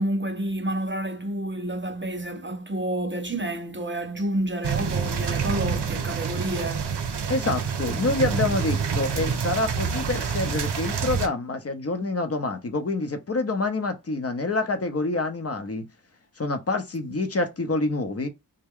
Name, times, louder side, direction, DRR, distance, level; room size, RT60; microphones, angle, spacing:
voice 1, 0.0-6.9, right 1 dB, 30° right, 0.6 m, -29 dB
sound 1, 4.6-11.3, right 6 dB, 80° right, 0.7 m, -27 dB
voice 2, 7.3-15.8 16.4-18.3, left 2 dB, 35° left, 0.7 m, -27 dB
3.3 x 2.2 x 3.5 m
cardioid pair, 65°, 41 cm